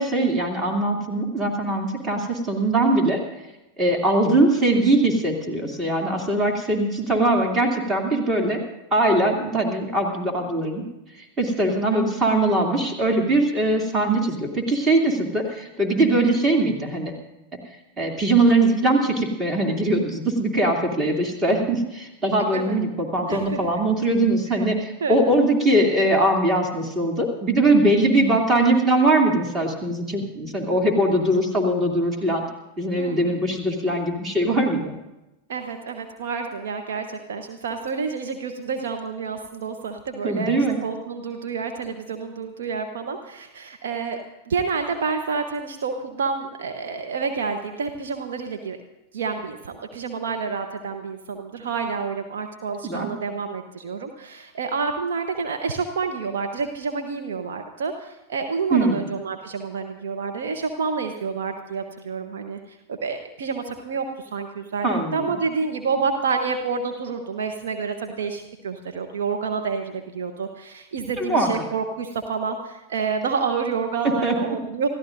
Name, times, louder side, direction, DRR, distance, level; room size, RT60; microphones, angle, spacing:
voice 1, 0.0-3.2 3.8-8.6 8.9-10.8 11.4-17.1 18.0-32.4 32.8-34.9 40.2-40.8 52.8-53.1 58.7-59.0 64.8-65.3 71.2-71.5 74.2-74.3, right 2 dB, 20° right, 2 dB, 2.8 m, -21 dB
voice 2, 23.3-23.6 24.5-24.7 25.0-25.4 33.0-33.4 35.5-44.2 44.4-48.8 49.1-74.9, right 5 dB, 60° right, 5 dB, 1.0 m, -29 dB
28.0 x 14.5 x 2.6 m, 0.97 s
figure-of-eight pair, 90°, 0 cm